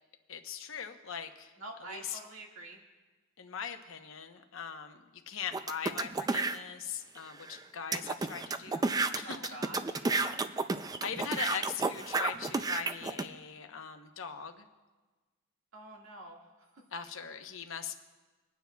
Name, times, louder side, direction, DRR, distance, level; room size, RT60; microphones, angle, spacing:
voice 1, 0.3-1.5 1.9-2.2 3.4-8.9 9.1-9.6 11.0-14.7 16.9-18.0, left 7 dB, 65° left, 6 dB, 0.9 m, -40 dB
voice 2, 1.6-2.8 9.2-10.4 15.7-16.8, right 2 dB, 75° right, 0 dB, 1.8 m, -46 dB
sound 1, 5.5-6.6 7.2-7.3 7.5-7.6 7.9-13.2, right 3 dB, 20° right, 0.3 m, -31 dB
25.5 x 9.4 x 2.3 m, 1.3 s
head